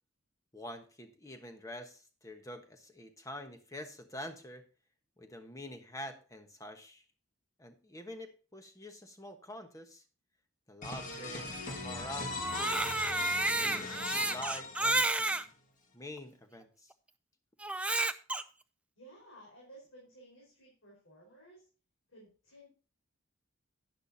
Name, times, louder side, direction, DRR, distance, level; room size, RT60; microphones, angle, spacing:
voice 1, 0.5-4.6 5.2-7.0 7.6-10.0 10.7-13.0 13.5-15.5 15.9-16.9, left 1 dB, 15° left, 6 dB, 1.2 m, -46 dB
sound 1, 10.8-15.4, left 3 dB, 40° left, 1.7 m, -40 dB
Crying sobbing, 12.3-15.4 16.2-16.3 17.6-18.4, right 2 dB, 5° right, 0.4 m, -31 dB
voice 2, 19.0-21.7 22.1-22.7, right 1 dB, 80° left, -3 dB, 4.7 m, -56 dB
11.0 x 10.0 x 2.8 m, 0.36 s
head